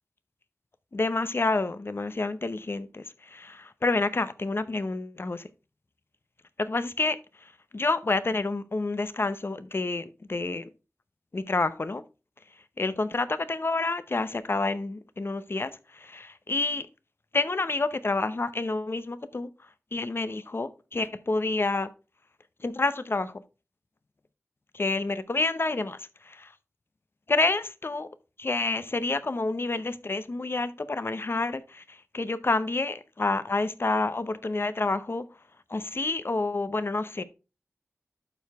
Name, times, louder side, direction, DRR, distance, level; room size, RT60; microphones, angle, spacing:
voice 1, 0.9-5.5 6.6-7.2 7.7-10.7 11.3-12.0 12.8-16.9 17.3-19.5 19.9-21.9 22.6-23.4 24.7-26.5 27.3-28.1 28.4-35.3 35.7-37.2, left 3 dB, 50° left, 0.7 m, -28 dB
12.0 x 4.7 x 3.5 m
wide cardioid pair, 60°, 5 cm